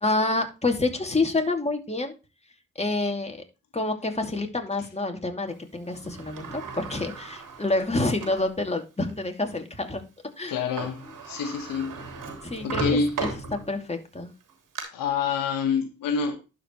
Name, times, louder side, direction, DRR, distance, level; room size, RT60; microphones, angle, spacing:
voice 1, 0.0-2.1 2.8-3.4 3.7-10.0 10.4-10.6 12.4-12.8 13.2-14.3, left 2 dB, 20° left, 2.6 m, -28 dB
Sliding door, 5.9-8.5 9.1-9.2 10.5-10.6 10.8-13.9 14.4-14.8, right 3 dB, 80° right, 2.9 m, -36 dB
voice 2, 10.5-12.0 12.6-13.2 14.9-16.4, left 5 dB, 85° left, 1.5 m, -27 dB
12.0 x 5.2 x 3.1 m
supercardioid pair, 50°, 32 cm